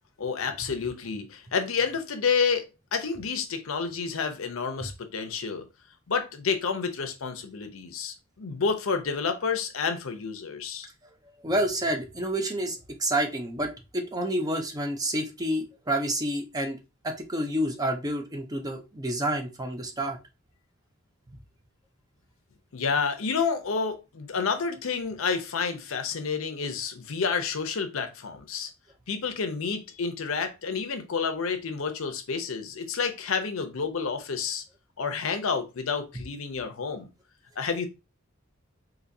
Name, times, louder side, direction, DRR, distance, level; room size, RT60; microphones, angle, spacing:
voice 1, 0.2-5.7 6.1-10.9 22.7-28.7 29.1-34.6 35.0-37.1 37.6-37.9, left 5 dB, 80° left, 0.6 m, -29 dB
voice 2, 11.4-16.8 17.0-20.2, right 1 dB, 20° right, 0.5 m, -29 dB
4.1 x 2.7 x 2.6 m
head